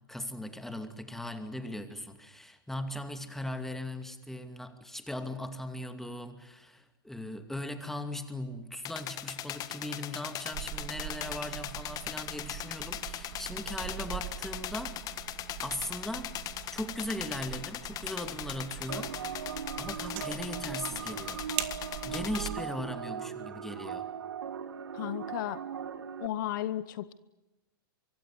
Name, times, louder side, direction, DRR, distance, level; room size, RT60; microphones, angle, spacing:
voice 1, 0.1-15.0 15.6-16.3 16.7-19.2 19.8-21.5 22.0-24.1, left 1 dB, 5° left, 8 dB, 2.6 m, -39 dB
sound 1, 8.8-22.5, left 12 dB, 30° left, 1.5 m, -40 dB
sound 2, 10.5-22.6, right 15 dB, 45° right, 2.1 m, -43 dB
sound 3, 18.9-26.3, right 8 dB, 85° right, 1.3 m, -39 dB
voice 2, 24.9-25.6 26.2-27.1, left 12 dB, 60° left, 16 dB, 1.1 m, -34 dB
24.5 x 24.0 x 9.7 m, 1.0 s
hypercardioid pair, 125°, 12 cm